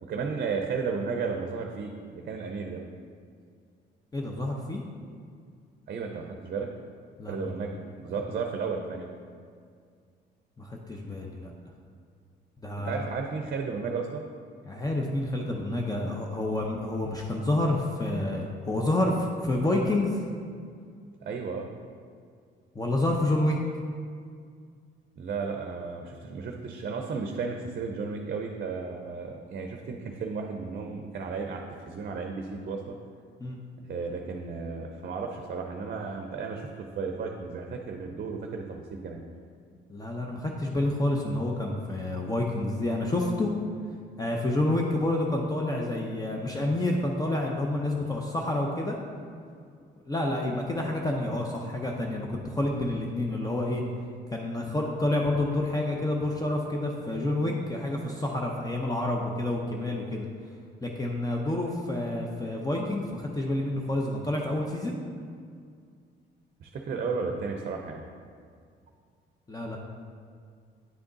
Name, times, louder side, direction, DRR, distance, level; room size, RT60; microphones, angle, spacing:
voice 1, 0.0-2.8 5.9-6.7 7.3-7.8 8.0-9.1 12.8-14.3 21.2-21.7 25.2-33.0 33.9-39.2 66.6-68.0, right 5 dB, 50° right, 3 dB, 0.6 m, -34 dB
voice 2, 4.1-4.8 7.2-7.4 10.6-11.5 12.6-13.0 14.7-20.2 22.7-23.6 33.4-33.6 39.9-43.5 44.2-49.0 50.1-53.8 54.3-60.3 60.8-65.0 69.5-69.8, left 1 dB, 20° left, 0 dB, 0.7 m, -28 dB
9.5 x 3.5 x 3.9 m, 2.1 s
cardioid pair, 90°, 20 cm